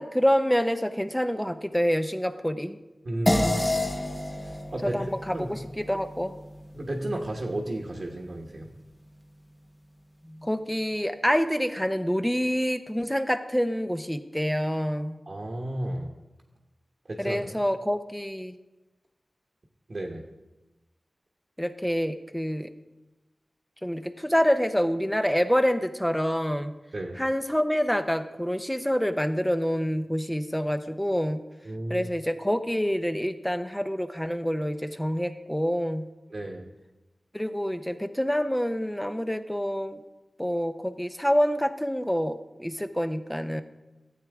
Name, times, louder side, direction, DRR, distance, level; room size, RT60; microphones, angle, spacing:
voice 1, 0.0-2.8 4.8-6.4 10.2-15.1 17.2-18.5 21.6-22.7 23.8-26.7 27.2-31.4 31.9-36.1 37.3-40.0 40.4-43.6, equal, 5° left, 9 dB, 0.7 m, -27 dB
voice 2, 3.0-3.8 4.4-5.0 5.3-5.5 6.7-8.7 15.3-16.1 17.1-17.6 19.9-20.2 26.9-27.2 31.6-32.1 36.3-36.6, right 1 dB, 60° right, -1 dB, 1.2 m, -33 dB
sound 1, 3.3-8.0, left 1 dB, 25° left, 1.0 m, -30 dB
12.5 x 8.2 x 3.6 m, 1.1 s
cardioid pair, 45°, 0 cm